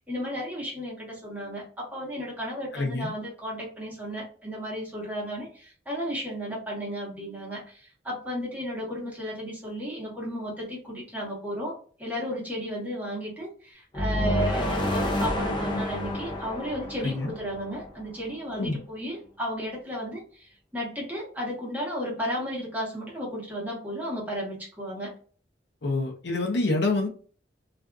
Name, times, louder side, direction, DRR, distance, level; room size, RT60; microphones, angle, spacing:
voice 1, 0.0-11.7 12.0-25.1, equal, 10° right, -5 dB, 1.1 m, -34 dB
voice 2, 2.7-3.1 17.0-17.3 18.5-18.8 25.8-27.1, left 2 dB, 65° left, 1 dB, 0.6 m, -27 dB
sound 1, 13.9-18.0, left 1 dB, 25° left, 0.6 m, -29 dB
2.5 x 2.5 x 2.2 m, 0.43 s
head